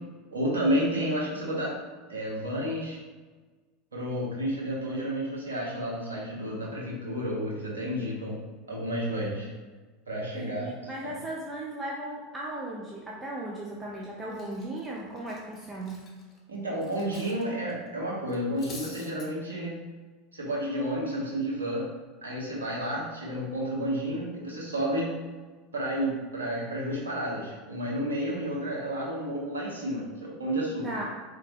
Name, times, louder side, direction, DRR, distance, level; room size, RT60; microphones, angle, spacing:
voice 1, 0.3-1.8 2.1-3.0 3.9-8.4 8.7-9.5 10.1-10.7 11.0-11.1 16.5-19.8 20.3-21.9 22.2-25.1 25.7-31.0, equal, 85° right, -5 dB, 1.5 m, -31 dB
voice 2, 10.3-16.0 30.8-31.1, right 1 dB, 15° right, -4 dB, 0.8 m, -37 dB
Cutlery silverware, 13.7-14.0 14.3-17.4 17.7-17.9 18.3-19.3, left 3 dB, 30° left, 1.2 m, -47 dB
4.4 x 3.7 x 3.0 m, 1.3 s
figure-of-eight pair, 80°, 0 cm